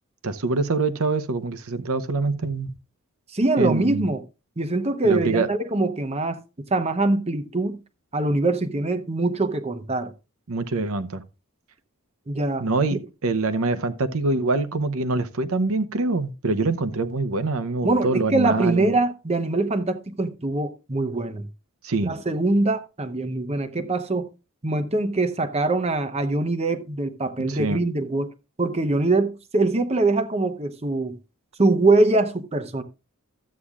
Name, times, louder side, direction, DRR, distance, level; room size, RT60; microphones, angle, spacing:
voice 1, 0.2-2.7 3.6-4.1 5.0-5.5 10.5-11.2 12.6-13.0 13.2-18.9 21.8-22.1 27.5-27.8, right 3 dB, 75° right, 0.8 m, -24 dB
voice 2, 3.3-4.2 4.6-6.4 6.7-7.8 8.1-10.1 12.3-13.0 17.8-21.5 22.0-24.3 24.6-28.3 28.6-31.1 31.6-32.8, right 2 dB, 30° right, 0.7 m, -23 dB
13.0 x 8.4 x 2.4 m
head